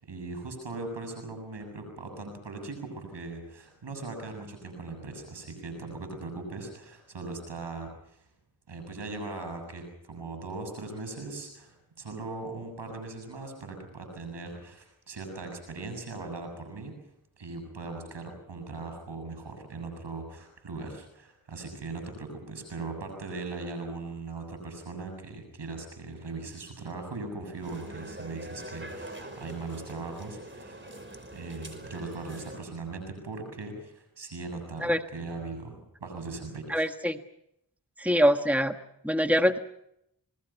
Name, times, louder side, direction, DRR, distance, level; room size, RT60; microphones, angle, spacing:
voice 1, 0.0-8.2 8.7-16.9 17.4-30.9 31.3-36.9, right 3 dB, 80° right, 6 dB, 7.6 m, -39 dB
sound 1, 27.6-32.6, right 1 dB, 30° right, 5.3 m, -43 dB
voice 2, 36.7-37.2 38.0-38.7 39.0-39.6, equal, 5° right, 8 dB, 1.4 m, -24 dB
28.5 x 20.0 x 5.8 m, 0.78 s
cardioid pair, 45°, 41 cm